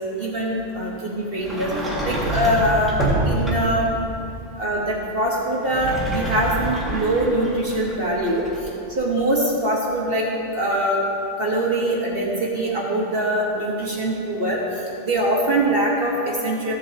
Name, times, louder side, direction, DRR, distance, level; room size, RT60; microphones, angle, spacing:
voice 1, 0.2-1.7 2.0-2.9 3.2-4.0 4.6-8.4 9.0-10.2 10.5-11.0 11.4-14.6 15.0-16.7, right 1 dB, 45° right, -3 dB, 1.2 m, -23 dB
Sliding door, 1.4-3.9 5.5-8.7, right 1 dB, ahead, 1.8 m, -26 dB
15.0 x 7.4 x 2.8 m, 2.6 s
omnidirectional pair, 1.5 m